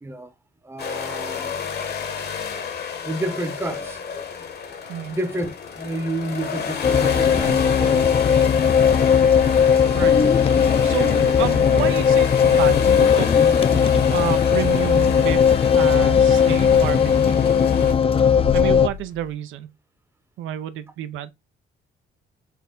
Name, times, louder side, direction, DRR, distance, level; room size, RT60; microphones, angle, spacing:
voice 1, 0.0-0.3 0.6-1.5 3.0-4.0 5.0-8.1, right 1 dB, 10° right, 0.7 m, -30 dB
sound 1, 0.8-17.9, left 6 dB, 55° left, 1.0 m, -31 dB
sound 2, 6.8-18.9, left 7 dB, 30° left, 0.4 m, -17 dB
sound 3, 7.3-19.3, left 7 dB, 75° left, 1.2 m, -37 dB
voice 2, 10.8-13.3 13.7-17.4 18.5-19.7 20.4-21.3, right 12 dB, 85° right, 0.4 m, -30 dB
4.3 x 2.2 x 3.6 m
cardioid pair, 90°, 20 cm